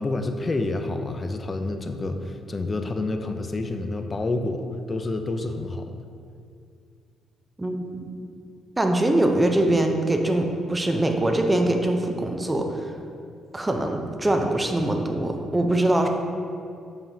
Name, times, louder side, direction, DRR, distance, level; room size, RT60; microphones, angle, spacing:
voice 1, 0.0-4.6 4.9-5.9, left 2 dB, 30° left, 6 dB, 0.5 m, -28 dB
voice 2, 7.6-8.1 8.8-12.8 13.5-16.1, right 1 dB, 15° right, 4 dB, 0.6 m, -23 dB
6.9 x 5.6 x 2.7 m, 2.4 s
cardioid pair, 90°, 0 cm